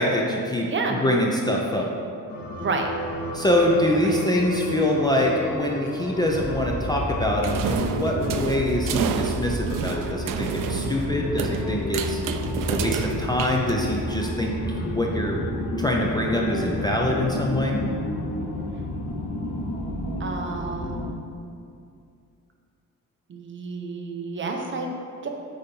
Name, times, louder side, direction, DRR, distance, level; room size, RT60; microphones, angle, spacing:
voice 1, 0.0-0.7 1.0-1.9 3.3-12.2 12.7-14.5 14.8-15.4 15.8-17.8, left 1 dB, 10° left, -1 dB, 0.5 m, -24 dB
voice 2, 0.7-1.0 2.6-2.9 4.0-4.2 20.2-21.3 23.3-24.9 25.2-25.3, right 4 dB, 35° right, 2 dB, 0.7 m, -30 dB
sound 1, 2.3-21.1, left 1 dB, 90° left, 1.5 m, -30 dB
sound 2, 7.4-14.2, right 7 dB, 70° right, 0.5 m, -30 dB
8.5 x 4.1 x 5.3 m, 2.4 s
wide cardioid pair, 170°, 33 cm